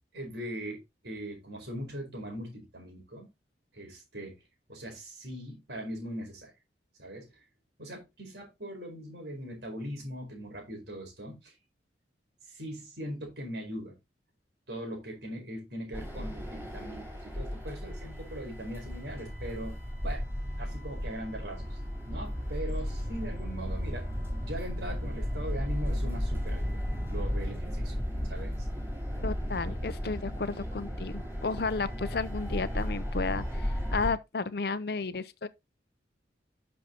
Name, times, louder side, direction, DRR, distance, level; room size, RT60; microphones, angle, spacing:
voice 1, 0.1-3.3 3.7-4.3 4.7-6.5 7.0-7.4 7.8-11.5 12.5-13.9 14.7-19.8 20.0-20.3 20.6-21.8 22.1-24.1 24.4-26.8 27.1-28.7, equal, 70° right, 4.6 m, -40 dB
sound 1, 15.9-34.1, equal, 15° right, 4.8 m, -34 dB
voice 2, 29.2-33.4 33.9-35.5, left 4 dB, 60° left, 0.6 m, -32 dB
10.5 x 6.4 x 2.9 m
head